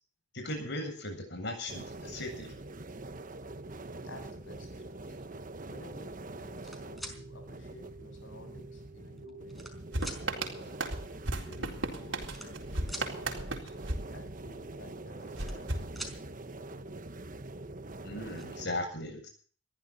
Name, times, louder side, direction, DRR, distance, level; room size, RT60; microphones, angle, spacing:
voice 1, 0.3-2.5 5.1-5.2 18.0-19.3, left 1 dB, 65° left, 7.8 m, -37 dB
sound 1, 1.7-18.7, right 2 dB, 45° right, 1.2 m, -44 dB
voice 2, 4.0-4.9 5.7-9.8 10.2-10.9 11.4-13.7 14.1-15.8, left 1 dB, 85° left, 7.7 m, -52 dB
sound 2, 6.4-7.2 8.1-8.2 9.1-9.7 10.0-10.2 11.4-11.5 11.6-11.8 12.2-13.1 15.0-15.7 15.9-16.2 17.6-17.7 18.0-18.4, right 1 dB, ahead, 4.7 m, -43 dB
sound 3, 9.9-14.8 15.4-16.6, right 2 dB, 75° right, 4.1 m, -36 dB
21.0 x 15.0 x 4.2 m
head